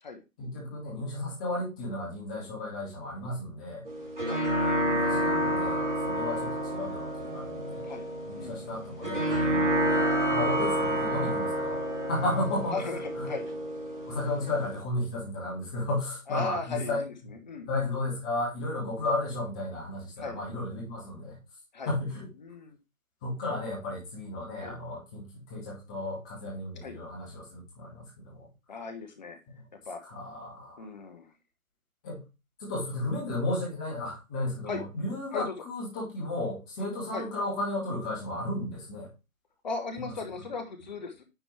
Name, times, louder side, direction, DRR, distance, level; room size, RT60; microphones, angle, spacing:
voice 1, 0.4-3.8 4.8-7.9 8.3-11.8 12.1-13.3 14.1-17.0 17.7-21.4 21.8-22.3 23.2-28.5 29.5-29.6 30.0-30.9 32.0-32.2 32.6-39.1 40.0-40.1, left 2 dB, 5° left, -4 dB, 0.7 m, -34 dB
sound 1, 3.9-14.8, right 1 dB, 60° right, 3.9 m, -29 dB
voice 2, 12.7-13.5 16.3-17.1 17.4-17.7 20.2-20.4 21.7-21.9 22.4-22.8 24.6-24.7 26.8-27.0 28.7-29.4 29.9-30.0 30.8-31.3 34.7-34.8 35.3-35.5 37.1-37.3 39.6-41.2, left 4 dB, 35° left, 6 dB, 1.0 m, -37 dB
9.1 x 4.1 x 3.2 m, 0.27 s
figure-of-eight pair, 145°, 41 cm